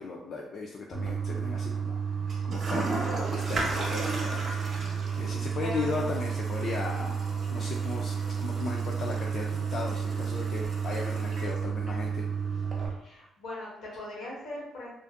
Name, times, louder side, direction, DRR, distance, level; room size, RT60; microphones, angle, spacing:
voice 1, 0.0-2.1 2.4-7.2 7.5-12.2 12.5-12.6, left 3 dB, 60° left, -1 dB, 0.3 m, -37 dB
Toilet flush, 0.9-12.9, right 5 dB, 50° right, 0.7 m, -31 dB
voice 2, 5.1-6.2 12.9-14.9, left 2 dB, 85° left, -4 dB, 1.0 m, -40 dB
2.5 x 2.5 x 2.3 m, 0.86 s
cardioid pair, 90°, 0 cm